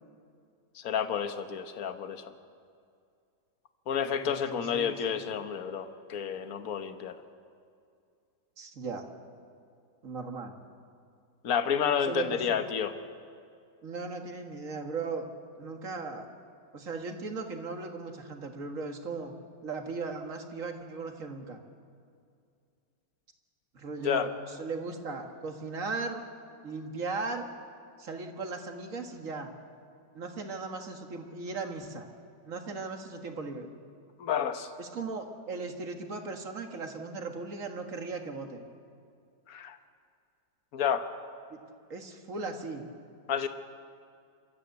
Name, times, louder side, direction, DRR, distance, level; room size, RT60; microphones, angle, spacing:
voice 1, 0.7-2.3 3.9-7.2 11.4-12.9 24.0-24.3 34.2-34.7 39.5-39.8 40.7-41.0 43.3-43.5, left 7 dB, 55° left, 8 dB, 1.5 m, -30 dB
voice 2, 4.2-5.5 8.6-9.0 10.0-10.5 12.0-12.6 13.8-15.3 15.6-16.3 16.7-19.3 19.6-21.6 23.7-26.2 26.6-27.5 28.0-29.5 30.1-32.1 32.5-33.7 34.8-38.6 41.5-41.6 41.9-42.9, right 4 dB, 50° right, 4 dB, 2.0 m, -37 dB
28.5 x 13.5 x 8.2 m, 2.4 s
omnidirectional pair, 1.9 m